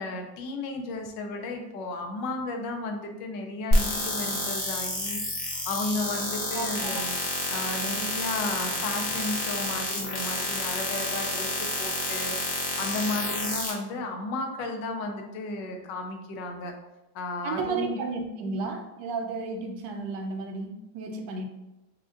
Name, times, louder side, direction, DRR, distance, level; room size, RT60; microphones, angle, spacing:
voice 1, 0.0-5.2 5.6-7.2 7.5-12.4 12.8-16.7 17.1-18.0, left 2 dB, 80° left, 3 dB, 1.2 m, -33 dB
sound 1, 3.7-13.7, left 1 dB, 45° left, 0.8 m, -29 dB
voice 2, 6.5-7.1 17.4-21.5, right 4 dB, 75° right, 4 dB, 1.2 m, -33 dB
6.2 x 2.2 x 2.4 m, 0.98 s
omnidirectional pair, 2.0 m